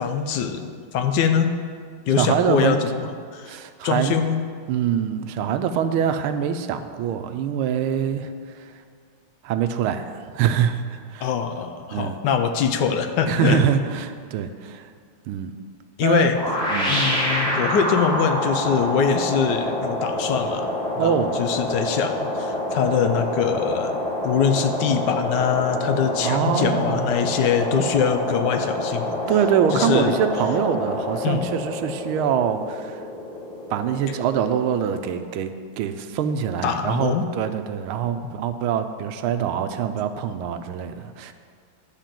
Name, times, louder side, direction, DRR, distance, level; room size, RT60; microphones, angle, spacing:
voice 1, 0.0-1.5 2.1-3.6 3.8-4.4 11.2-13.6 16.0-16.4 16.9-20.7 21.0-24.0 24.2-29.2 29.7-30.2 31.2-31.5 36.6-37.3 38.2-38.3, left 7 dB, 70° left, 7 dB, 1.1 m, -23 dB
voice 2, 2.2-2.8 3.5-4.2 4.7-8.7 9.4-11.3 11.9-12.2 13.3-14.9 15.3-15.5 16.0-17.1 21.0-21.4 26.2-27.1 29.3-33.0 33.7-41.3, right 8 dB, 80° right, 9 dB, 1.4 m, -24 dB
sound 1, 16.3-35.2, left 1 dB, ahead, 2.0 m, -27 dB
10.5 x 4.4 x 7.5 m, 2.1 s
omnidirectional pair, 2.4 m